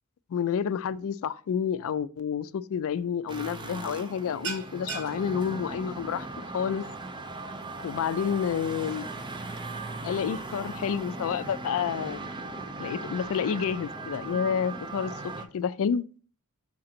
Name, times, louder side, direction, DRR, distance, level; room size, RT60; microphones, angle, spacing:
voice 1, 0.3-6.3 6.5-6.8 7.8-9.1 10.0-12.3 12.8-16.0, left 7 dB, 65° left, 0.3 m, -29 dB
sound 1, 2.8-3.1 3.4-3.7 3.9-10.8, right 4 dB, 80° right, 1.3 m, -44 dB
sound 2, 3.3-15.5, right 2 dB, 20° right, 0.6 m, -38 dB
5.9 x 3.8 x 4.3 m
head